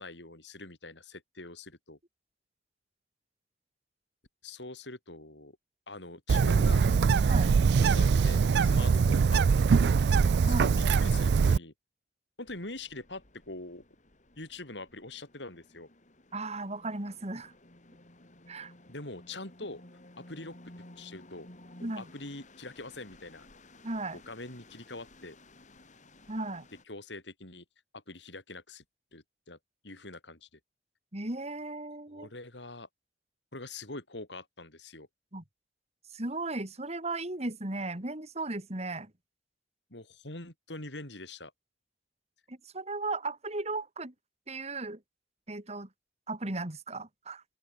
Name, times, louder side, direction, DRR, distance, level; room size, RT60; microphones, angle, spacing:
voice 1, 0.0-2.0 4.4-5.6 5.9-6.8 7.8-9.9 10.5-11.7 12.4-13.8 14.4-15.9 18.9-19.8 20.2-20.6 21.0-21.5 21.8-23.5 24.1-25.4 26.9-27.6 27.9-28.8 29.1-29.6 29.8-30.5 32.1-32.9 33.5-35.1 39.9-41.5, left 2 dB, 80° left, 6.4 m, -44 dB
Bird, 6.3-11.6, right 5 dB, 65° right, 0.4 m, -23 dB
sound 1, 12.5-26.8, left 1 dB, 45° left, 4.7 m, -55 dB
voice 2, 16.3-17.5 18.5-18.7 21.8-22.1 23.8-24.2 26.3-26.7 31.1-32.3 35.3-35.4 36.1-39.1 42.5-44.1 44.5-45.0 45.5-45.9 46.3-47.4, right 2 dB, 35° right, 2.9 m, -36 dB
open air
head